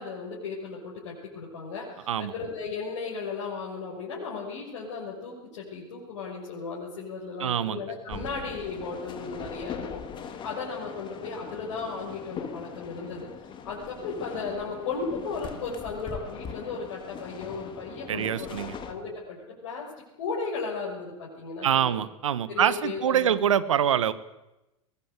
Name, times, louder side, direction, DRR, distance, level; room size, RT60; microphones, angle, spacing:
voice 1, 0.0-13.3 13.6-18.6 18.8-19.9 20.2-22.0 22.5-23.4, left 4 dB, 65° left, -4 dB, 6.3 m, -35 dB
voice 2, 7.4-7.8 8.1-8.3 18.1-18.8 21.6-24.1, right 9 dB, 70° right, 15 dB, 1.4 m, -25 dB
sound 1, 8.1-18.9, left 6 dB, 30° left, 2.8 m, -41 dB
22.5 x 19.0 x 8.3 m, 0.98 s
figure-of-eight pair, 90°, 17 cm